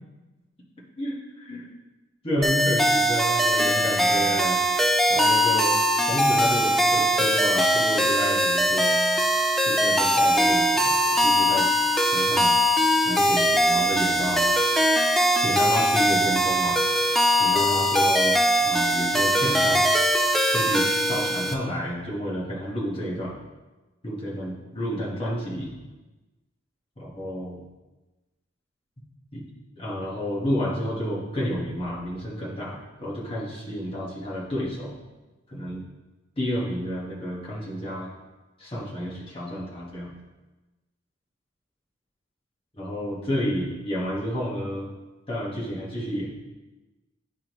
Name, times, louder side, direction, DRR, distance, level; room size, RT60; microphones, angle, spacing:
voice 1, 1.0-1.7 2.2-4.6 5.1-8.9 9.6-11.7 12.1-12.6 13.0-14.5 15.4-16.8 17.4-19.9 20.5-23.4 24.0-25.7 27.0-27.6 29.3-29.4 29.8-35.0 35.5-35.8 36.4-38.1 38.6-40.1 42.8-44.9 45.3-46.3, equal, 30° left, -5 dB, 1.5 m, -30 dB
sound 1, 2.4-21.5, equal, ahead, 0.4 m, -21 dB
10.5 x 3.7 x 3.1 m, 1.1 s
head